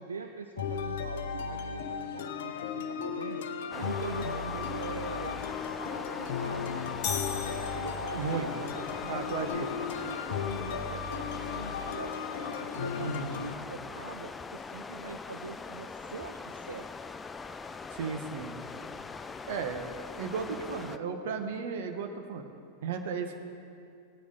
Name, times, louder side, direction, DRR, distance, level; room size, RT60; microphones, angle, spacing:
voice 1, 0.0-3.4 3.7-5.4 6.2-6.8 7.7-9.7 10.0-12.1 12.5-16.9, right 5 dB, 75° right, 6 dB, 0.4 m, -43 dB
sound 1, 0.6-13.5, left 7 dB, 55° left, 0.7 m, -36 dB
sound 2, 3.7-21.0, left 4 dB, 15° left, 0.4 m, -41 dB
sound 3, 7.0-8.4, left 7 dB, 35° left, 1.6 m, -36 dB
voice 2, 8.2-8.5 9.1-9.8 13.0-13.3 17.9-18.6 19.5-19.8 20.2-22.4 22.8-23.4, right 5 dB, 55° right, 5 dB, 1.1 m, -34 dB
17.0 x 9.4 x 3.9 m, 2.4 s
figure-of-eight pair, 90°, 0 cm